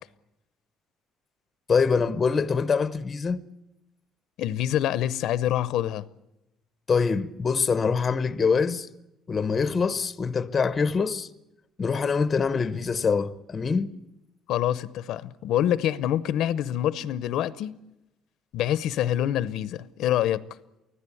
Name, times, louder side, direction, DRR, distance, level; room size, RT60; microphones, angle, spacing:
voice 1, 1.7-3.4 6.9-8.9 9.3-11.3 11.8-13.9, left 5 dB, 25° left, 0.8 m, -24 dB
voice 2, 4.4-6.0 14.5-17.7 18.5-20.4, left 11 dB, 65° left, 0.7 m, -26 dB
24.5 x 16.0 x 8.5 m
cardioid pair, 160°, 0 cm